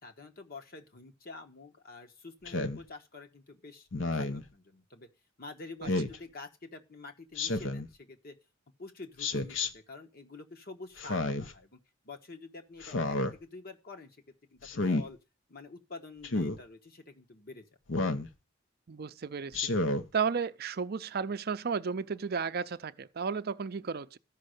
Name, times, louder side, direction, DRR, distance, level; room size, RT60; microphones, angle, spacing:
voice 1, 0.0-5.1 5.4-8.4 8.8-15.2 15.5-17.7, left 3 dB, 50° left, 1.3 m, -48 dB
Speech synthesizer, 2.5-2.8 3.9-4.4 5.8-6.2 7.3-7.9 9.2-9.7 11.0-11.5 12.8-13.3 14.6-15.0 16.2-16.6 17.9-18.3 19.5-20.0, left 2 dB, 65° left, 0.8 m, -30 dB
voice 2, 18.9-19.7 20.1-24.2, right 6 dB, 50° right, 0.5 m, -33 dB
13.5 x 5.4 x 6.5 m
head